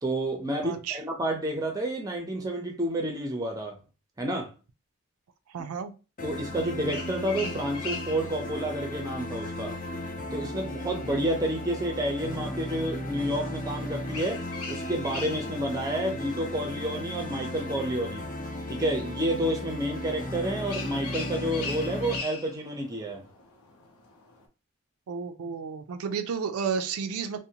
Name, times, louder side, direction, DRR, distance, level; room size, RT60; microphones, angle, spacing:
voice 1, 0.0-3.8 4.2-4.5 6.2-9.8 10.3-18.3 18.7-23.2, right 1 dB, 15° right, 0.5 m, -30 dB
voice 2, 0.6-1.0 5.5-5.9 25.1-27.4, right 6 dB, 80° right, 0.4 m, -32 dB
sound 1, 6.2-22.2, left 1 dB, 40° left, 0.5 m, -36 dB
sound 2, 6.7-24.5, left 4 dB, 90° left, 0.6 m, -44 dB
2.5 x 2.1 x 2.8 m
head